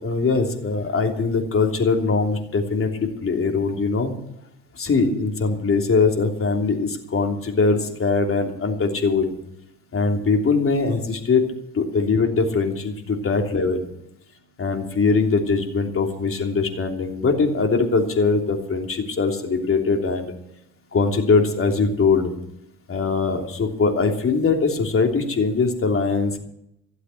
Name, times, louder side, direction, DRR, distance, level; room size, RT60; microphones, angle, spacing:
voice 1, 0.0-4.2 4.7-9.3 9.9-11.4 11.7-13.8 14.6-20.3 20.9-22.3 22.9-26.4, left 4 dB, 45° left, 2 dB, 3.2 m, -21 dB
16.0 x 8.1 x 9.1 m, 0.77 s
cardioid pair, 90°, 30 cm